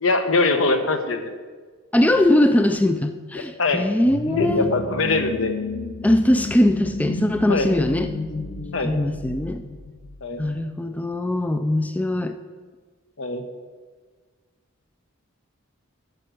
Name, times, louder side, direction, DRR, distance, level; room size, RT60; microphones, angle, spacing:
voice 1, 0.0-1.4 3.6-3.8 4.3-5.5 7.5-7.7 8.7-8.9 10.2-10.4 13.2-13.4, left 3 dB, 75° left, 7 dB, 1.0 m, -22 dB
voice 2, 1.9-4.7 6.0-8.1 8.8-9.6 10.4-12.3, left 1 dB, 5° left, 8 dB, 0.3 m, -21 dB
sound 1, 4.0-10.5, left 3 dB, 40° left, 0.7 m, -31 dB
9.7 x 6.5 x 6.2 m, 1.5 s
head